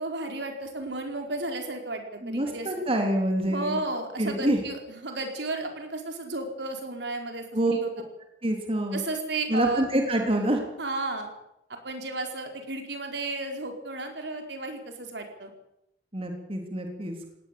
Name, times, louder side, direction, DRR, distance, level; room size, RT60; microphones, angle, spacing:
voice 1, 0.0-2.8 3.5-7.9 8.9-9.9 10.8-11.3 11.7-15.5, right 2 dB, 75° right, 4 dB, 4.7 m, -33 dB
voice 2, 2.2-3.8 4.2-4.6 7.5-7.7 8.4-9.0 9.5-10.6 16.1-17.2, right 1 dB, 30° right, 3 dB, 3.4 m, -26 dB
20.0 x 18.0 x 8.5 m, 0.83 s
head